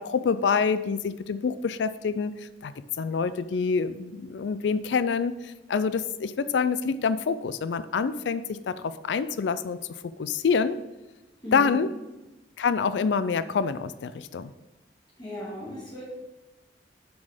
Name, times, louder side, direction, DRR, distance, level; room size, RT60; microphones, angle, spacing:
voice 1, 0.0-2.7 3.0-10.8 11.5-11.9 12.6-14.5, left 5 dB, 80° left, 14 dB, 0.4 m, -27 dB
voice 2, 11.4-11.8 15.2-16.0, left 1 dB, 25° left, -8 dB, 2.1 m, -36 dB
7.2 x 6.1 x 5.0 m, 1.1 s
head